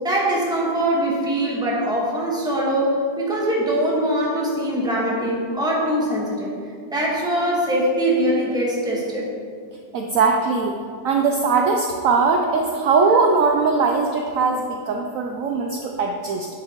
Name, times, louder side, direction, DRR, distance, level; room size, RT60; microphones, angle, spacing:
voice 1, 0.0-6.5 6.9-9.2, right 1 dB, 5° right, -4 dB, 1.0 m, -22 dB
voice 2, 9.9-10.7 11.0-16.5, right 4 dB, 75° right, 2 dB, 0.7 m, -20 dB
9.5 x 6.9 x 2.9 m, 2.2 s
omnidirectional pair, 2.0 m